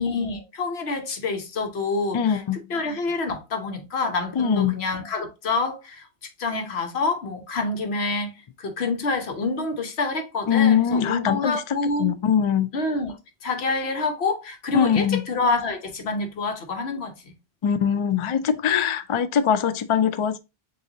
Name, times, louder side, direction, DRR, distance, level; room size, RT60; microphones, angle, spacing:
voice 1, 0.0-2.4 2.7-6.1 6.4-8.3 8.6-12.1 12.7-13.1 13.4-17.3, left 3 dB, 85° left, 1.3 m, -27 dB
voice 2, 2.1-2.6 4.4-4.7 10.5-12.7 14.7-15.3 17.6-20.4, left 8 dB, 55° left, 0.3 m, -22 dB
7.6 x 2.7 x 2.6 m
omnidirectional pair, 1.0 m